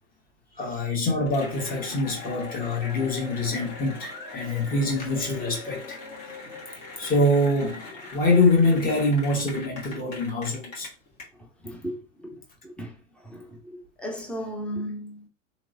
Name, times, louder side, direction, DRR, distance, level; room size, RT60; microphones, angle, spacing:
voice 1, 0.6-6.0 7.0-10.9, left 2 dB, 20° left, 1.2 m, -24 dB
Cheering / Applause, 1.3-11.2, left 3 dB, 45° left, 1.7 m, -41 dB
voice 2, 11.4-12.4 12.6-15.3, equal, 5° left, 0.4 m, -36 dB
3.0 x 2.9 x 2.6 m
figure-of-eight pair, 95°, 39 cm